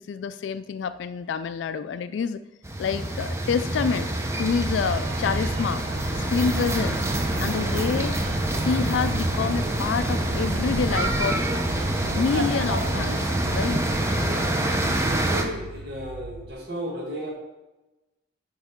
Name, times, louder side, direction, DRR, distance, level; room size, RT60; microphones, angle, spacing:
voice 1, 0.0-2.4 2.8-4.1 4.4-5.8 6.1-7.0 7.4-8.2 8.5-11.5 12.1-13.3 13.5-13.8, left 6 dB, 85° left, 12 dB, 0.3 m, -27 dB
sound 1, 2.6-15.4, right 1 dB, 15° right, 0.7 m, -26 dB
sound 2, 4.4-16.5, right 3 dB, 45° right, 0.3 m, -40 dB
sound 3, 4.8-15.2, right 2 dB, 90° right, 0.8 m, -36 dB
voice 2, 15.1-17.3, equal, 60° right, -2 dB, 1.7 m, -34 dB
10.5 x 5.4 x 3.6 m, 1.1 s
head